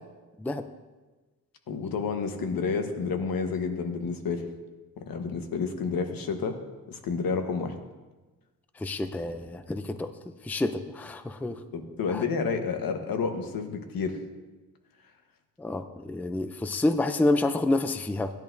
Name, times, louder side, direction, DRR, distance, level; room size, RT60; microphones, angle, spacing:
voice 1, 1.7-4.4 5.0-6.6 6.9-7.7 11.7-14.2, left 5 dB, 75° left, 5 dB, 1.2 m, -30 dB
voice 2, 8.8-10.1 10.4-11.6 12.1-12.2 15.6-18.3, left 2 dB, 5° left, 9 dB, 0.4 m, -28 dB
17.5 x 10.5 x 2.6 m, 1.2 s
wide cardioid pair, 140°, 35 cm